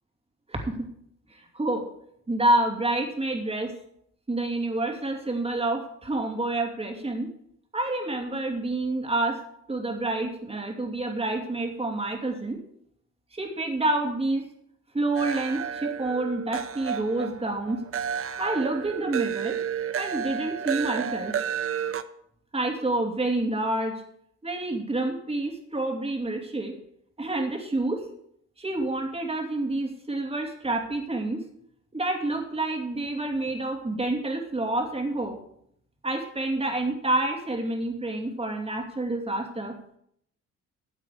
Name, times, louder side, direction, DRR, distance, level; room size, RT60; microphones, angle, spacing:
voice 1, 0.5-0.9 1.3-1.8 2.3-3.7 4.3-7.3 7.7-9.4 9.7-12.6 13.3-14.4 14.9-17.8 18.4-19.6 19.9-21.3 22.5-24.0 24.4-26.7 27.2-28.0 28.6-31.4 31.9-35.4 36.0-39.7, right 2 dB, 20° right, 2 dB, 2.7 m, -28 dB
sound 1, 15.2-22.0, right 8 dB, 45° right, 0.7 m, -31 dB
13.5 x 7.6 x 5.0 m, 0.70 s
cardioid pair, 90°, 30 cm